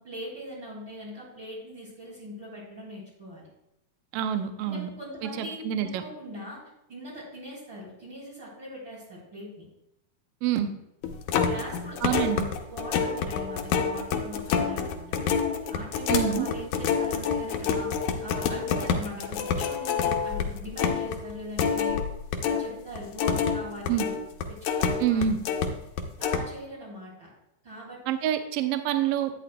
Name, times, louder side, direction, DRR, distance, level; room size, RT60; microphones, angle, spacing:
voice 1, 0.0-3.5 4.6-6.6 6.9-9.7 11.4-12.4 12.7-15.4 15.7-17.9 18.2-22.0 22.4-24.2 24.5-25.4 26.2-27.3 27.6-28.3, equal, 40° right, -4 dB, 2.9 m, -41 dB
voice 2, 4.1-4.9 5.4-6.0 10.4-10.7 12.0-12.4 16.1-16.5 23.9-24.0 25.0-25.4 28.1-29.4, right 9 dB, 75° right, 8 dB, 1.5 m, -26 dB
sound 1, 11.0-22.7 22.9-25.7 26.0-26.4, left 6 dB, 80° left, 2.1 m, -27 dB
12.5 x 9.1 x 2.2 m, 0.83 s
omnidirectional pair, 3.4 m